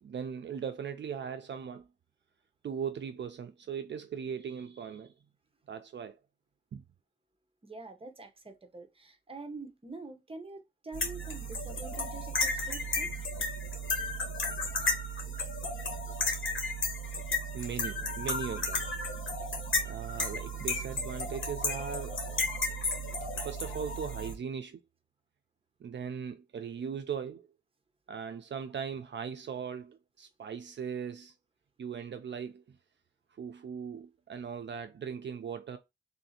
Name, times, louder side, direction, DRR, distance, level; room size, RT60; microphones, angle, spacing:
voice 1, 0.0-1.9 2.6-5.1 5.7-6.2 6.7-6.8 17.5-18.8 19.8-22.2 23.4-24.8 25.8-27.5 28.1-31.3 31.8-32.6 33.3-35.8, right 7 dB, 60° right, 0.4 m, -39 dB
voice 2, 7.6-13.1, right 3 dB, 25° right, 0.8 m, -46 dB
sound 1, 10.9-24.3, left 2 dB, 75° left, 1.5 m, -33 dB
3.2 x 2.6 x 4.1 m
wide cardioid pair, 120°, 20 cm